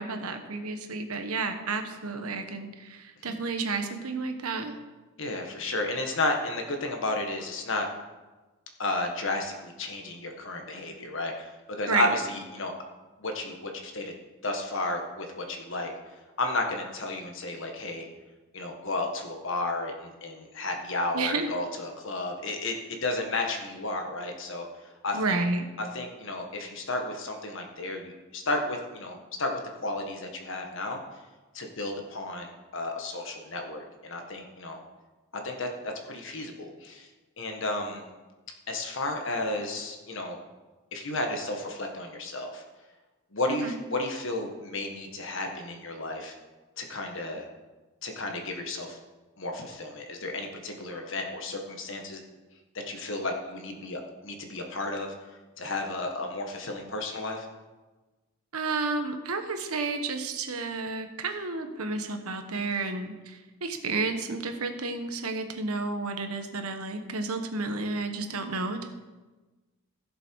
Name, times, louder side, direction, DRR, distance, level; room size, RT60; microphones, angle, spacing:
voice 1, 0.0-4.8 11.9-12.1 21.1-21.5 25.1-25.6 43.5-43.8 58.5-68.9, right 3 dB, 85° right, 6 dB, 1.2 m, -31 dB
voice 2, 5.2-7.9 8.8-12.7 13.2-14.1 14.4-15.9 16.4-18.1 18.5-24.7 25.0-25.4 25.9-31.0 31.5-34.8 35.4-37.1 37.4-38.0 38.7-40.4 40.9-42.6 43.3-46.3 46.8-47.4 48.0-49.0 49.4-52.2 52.8-55.1 55.6-57.5, left 2 dB, 60° left, 3 dB, 1.6 m, -32 dB
15.5 x 6.8 x 4.7 m, 1.2 s
head